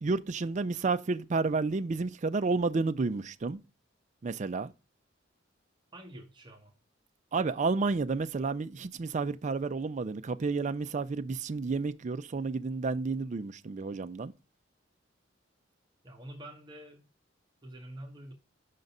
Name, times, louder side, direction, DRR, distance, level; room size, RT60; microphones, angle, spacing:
voice 1, 0.0-3.6 4.2-4.7 7.3-14.3, right 4 dB, 40° right, 0.4 m, -31 dB
voice 2, 5.9-6.7 16.0-17.0 17.6-18.3, right 1 dB, 25° right, 1.3 m, -47 dB
5.9 x 3.9 x 5.3 m
head